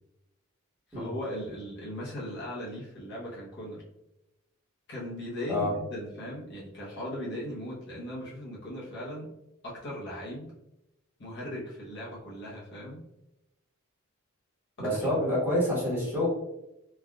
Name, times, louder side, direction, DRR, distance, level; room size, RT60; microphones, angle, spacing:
voice 1, 0.9-3.8 4.9-9.3 9.6-10.5 11.2-13.0 14.8-15.3, equal, 55° left, -5 dB, 0.8 m, -38 dB
voice 2, 14.8-16.3, left 1 dB, 10° right, -7 dB, 1.1 m, -27 dB
3.4 x 2.4 x 2.2 m, 0.90 s
head